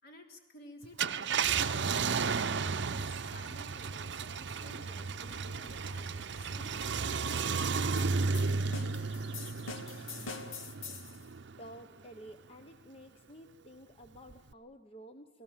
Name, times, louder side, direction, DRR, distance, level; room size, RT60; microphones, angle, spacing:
voice 1, 0.0-7.0, left 1 dB, 55° left, 2 dB, 3.4 m, -54 dB
Car, 0.8-11.7 12.2-12.3 14.3-14.5, right 5 dB, 65° right, 0.7 m, -33 dB
sound 1, 8.0-11.2, left 4 dB, 85° left, 2.3 m, -45 dB
voice 2, 11.6-15.4, right 1 dB, 30° left, 6 dB, 1.1 m, -51 dB
30.0 x 18.5 x 7.5 m, 1.0 s
head